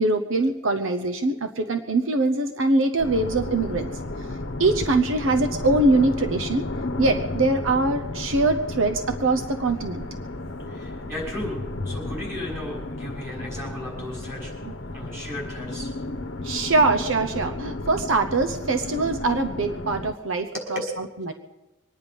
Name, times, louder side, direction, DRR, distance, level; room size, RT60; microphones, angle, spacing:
voice 1, 0.0-3.9 4.6-6.7 7.0-10.1 14.6-14.7 16.4-20.8 21.2-21.3, right 2 dB, 75° right, 6 dB, 0.9 m, -23 dB
sound 1, 3.0-20.1, left 2 dB, 65° left, 0.9 m, -33 dB
voice 2, 10.7-14.5 14.9-15.9 20.5-20.8, left 1 dB, 15° right, -4 dB, 6.2 m, -35 dB
23.5 x 10.0 x 5.4 m, 1.0 s
head